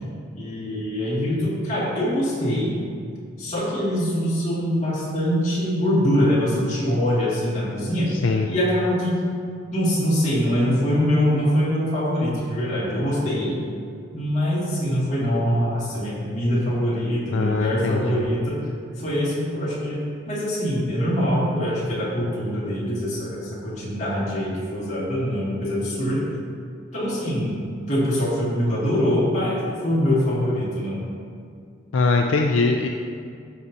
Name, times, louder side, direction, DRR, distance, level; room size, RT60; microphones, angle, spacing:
voice 1, 0.3-2.8 3.4-8.1 8.5-9.2 9.7-13.6 14.1-18.6 19.0-26.3 26.9-27.6 27.9-29.6 29.8-31.0, equal, 35° left, -7 dB, 2.0 m, -23 dB
voice 2, 17.3-18.2 31.9-32.9, left 3 dB, 75° left, 2 dB, 0.4 m, -21 dB
12.5 x 5.8 x 2.8 m, 2.3 s
head